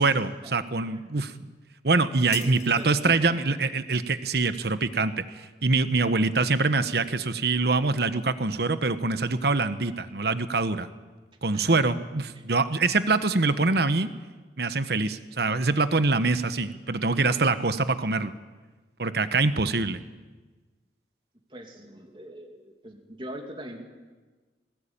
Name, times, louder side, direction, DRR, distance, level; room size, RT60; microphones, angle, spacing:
voice 1, 0.0-1.5 1.8-10.9 11.4-14.1 14.6-18.3 19.0-20.0, right 3 dB, 65° right, 11 dB, 1.1 m, -24 dB
sound 1, 2.3-3.3, left 8 dB, 40° left, 1.9 m, -41 dB
voice 2, 2.4-3.5 11.5-11.6 12.3-12.4 20.0-20.1 21.5-23.8, right 1 dB, 30° right, 3 dB, 2.7 m, -41 dB
20.5 x 18.5 x 8.8 m, 1.3 s
head